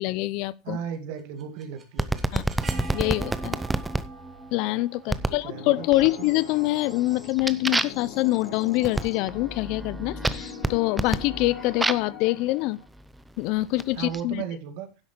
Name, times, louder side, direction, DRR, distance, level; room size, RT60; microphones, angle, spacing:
voice 1, 0.0-0.8 2.3-2.5 2.9-3.6 4.5-12.8 13.4-14.4, left 19 dB, 60° left, 0.6 m, -25 dB
voice 2, 0.6-2.2 5.1-6.3 14.0-14.9, right 8 dB, 70° right, 2.3 m, -36 dB
sound 1, 1.2-7.1, right 3 dB, 25° right, 2.7 m, -42 dB
sound 2, 2.0-4.0 5.1-5.4 5.9-6.4 6.8-12.2 13.0-14.2, right 2 dB, 10° right, 0.7 m, -29 dB
sound 3, 5.5-12.9, left 7 dB, 75° left, 4.3 m, -41 dB
10.5 x 7.9 x 4.5 m
cardioid pair, 145°, 0 cm